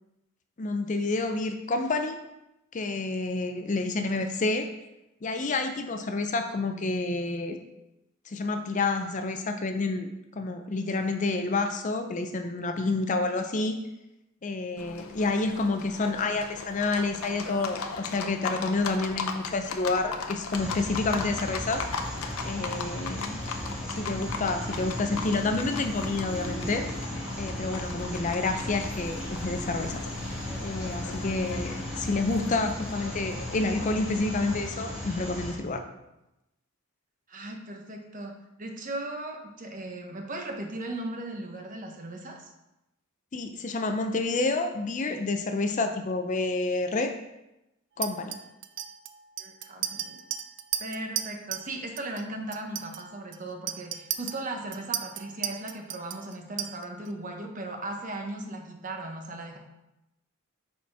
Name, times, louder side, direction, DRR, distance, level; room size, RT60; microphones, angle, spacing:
voice 1, 0.6-2.2 2.7-4.7 5.2-7.6 8.3-13.8 14.4-21.9 22.4-23.4 23.8-27.0 27.4-30.0 30.6-35.8 43.3-47.1 48.0-48.4, left 3 dB, 35° left, 7 dB, 0.4 m, -29 dB
Livestock farm animals working animals, 14.8-34.7, left 5 dB, 75° left, 0.6 m, -39 dB
sound 1, 20.5-35.5, left 1 dB, 5° right, 1.7 m, -36 dB
voice 2, 37.3-38.3 38.6-42.5 49.4-50.2 50.8-59.6, right 2 dB, 35° right, 3 dB, 0.9 m, -37 dB
Chink clink, 48.0-51.7 52.0-52.2 52.5-57.1, right 11 dB, 55° right, 0.4 m, -35 dB
6.4 x 4.1 x 4.7 m, 0.92 s
head